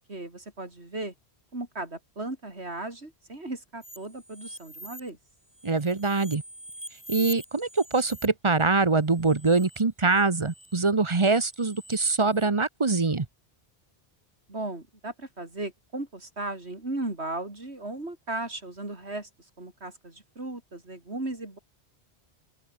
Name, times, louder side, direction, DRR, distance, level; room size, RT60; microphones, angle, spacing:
voice 1, 0.1-1.1 1.5-5.2 14.5-19.3 19.6-21.6, right 2 dB, 85° right, 5.0 m, -36 dB
sound 1, 3.8-5.1 5.5-8.3 9.2-9.8 10.1-10.8 11.4-12.4, right 1 dB, 10° right, 3.5 m, -44 dB
voice 2, 5.6-6.4 7.1-13.3, right 3 dB, 30° right, 1.0 m, -24 dB
open air
omnidirectional pair, 1.1 m